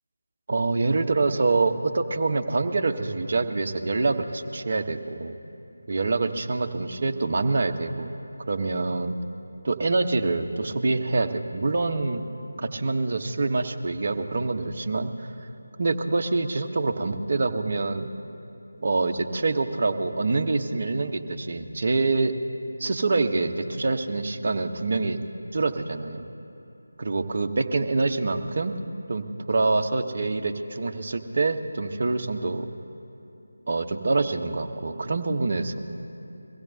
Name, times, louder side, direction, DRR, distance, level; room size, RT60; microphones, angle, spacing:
voice 1, 0.5-5.3 5.9-8.1 8.4-9.2 9.6-12.3 12.6-15.5 15.8-18.1 18.8-22.3 22.8-25.2 25.5-26.3 27.0-28.7 29.1-32.7 33.7-35.8, right 3 dB, 45° right, 6 dB, 0.9 m, -26 dB
23.0 x 16.0 x 2.7 m, 3.0 s
figure-of-eight pair, 160°, 0 cm